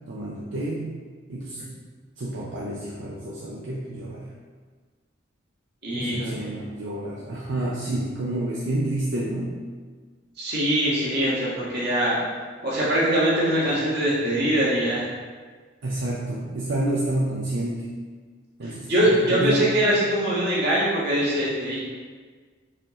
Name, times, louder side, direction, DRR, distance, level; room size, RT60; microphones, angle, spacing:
voice 1, 0.1-0.9 1.3-1.6 2.2-4.3 5.9-9.6 15.8-17.9 18.6-19.7, right 1 dB, 70° right, -5 dB, 0.6 m, -29 dB
voice 2, 5.8-6.4 10.4-12.2 12.6-15.0 18.9-21.8, right 1 dB, 55° right, -7 dB, 1.5 m, -22 dB
4.9 x 3.0 x 3.6 m, 1.5 s
head